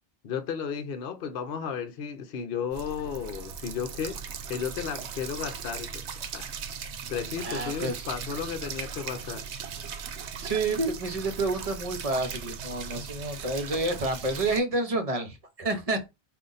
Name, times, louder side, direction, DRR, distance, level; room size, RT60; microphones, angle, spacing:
voice 1, 0.2-4.2 4.5-6.5 7.1-9.4, left 7 dB, 60° left, 0.8 m, -34 dB
sound 1, 2.7-14.6, right 6 dB, 80° right, 0.9 m, -38 dB
voice 2, 7.4-8.1 10.4-16.1, right 2 dB, 35° right, 0.9 m, -29 dB
5.0 x 2.5 x 4.0 m
omnidirectional pair, 1.1 m